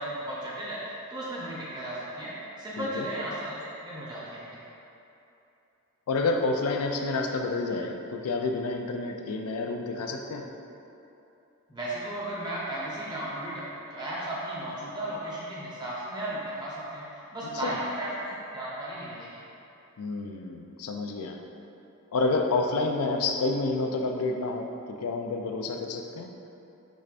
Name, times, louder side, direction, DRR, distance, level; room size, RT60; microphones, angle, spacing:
voice 1, 0.0-2.3 2.6-4.6 11.7-19.4, right 1 dB, 20° right, -8 dB, 0.7 m, -35 dB
voice 2, 2.8-3.1 6.1-10.5 17.6-17.8 20.0-21.4 22.1-26.3, left 3 dB, 90° left, 4 dB, 0.4 m, -29 dB
6.2 x 3.2 x 2.5 m, 2.9 s
head